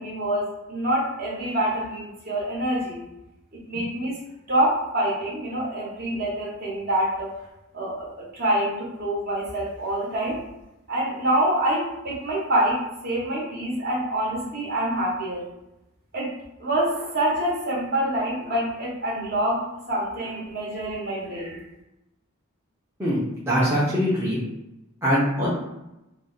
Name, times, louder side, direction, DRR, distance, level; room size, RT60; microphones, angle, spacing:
voice 1, 0.0-3.0 3.5-4.1 4.5-7.3 7.7-10.4 10.9-15.4 16.1-16.3 16.6-21.6, right 1 dB, 45° right, -5 dB, 0.9 m, -26 dB
voice 2, 23.0-24.4 25.0-25.5, equal, 10° right, -9 dB, 0.6 m, -23 dB
2.6 x 2.1 x 3.8 m, 0.92 s
head